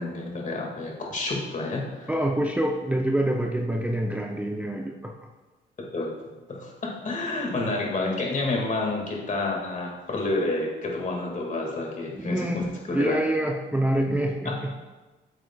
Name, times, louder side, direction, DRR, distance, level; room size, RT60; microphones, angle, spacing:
voice 1, 0.0-2.1 5.8-6.2 6.5-13.2 14.5-14.6, left 2 dB, 40° left, 0 dB, 2.0 m, -29 dB
voice 2, 2.1-5.1 12.2-14.7, right 1 dB, 5° right, 0 dB, 0.5 m, -26 dB
8.8 x 7.8 x 2.3 m, 1.2 s
cardioid pair, 90°, 20 cm